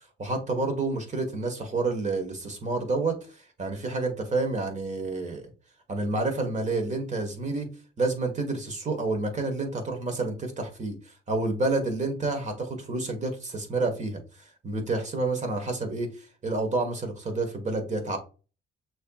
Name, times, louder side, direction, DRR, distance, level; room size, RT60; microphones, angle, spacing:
voice 1, 0.2-5.5 5.9-7.7 8.0-18.2, right 3 dB, 35° right, 5 dB, 1.6 m, -29 dB
6.2 x 3.0 x 2.4 m, 0.34 s
cardioid pair, 90°, 20 cm